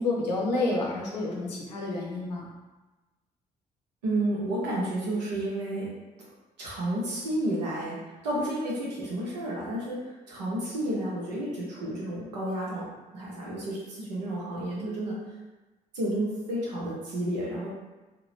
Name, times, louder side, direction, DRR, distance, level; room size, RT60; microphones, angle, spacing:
voice 1, 0.0-2.4, left 2 dB, 85° left, -4 dB, 0.5 m, -29 dB
voice 2, 4.0-5.9 6.6-8.0 8.2-12.9 13.1-15.2 15.9-17.7, right 1 dB, 85° right, -6 dB, 0.7 m, -31 dB
2.7 x 2.1 x 3.1 m, 1.2 s
figure-of-eight pair, 40°, 21 cm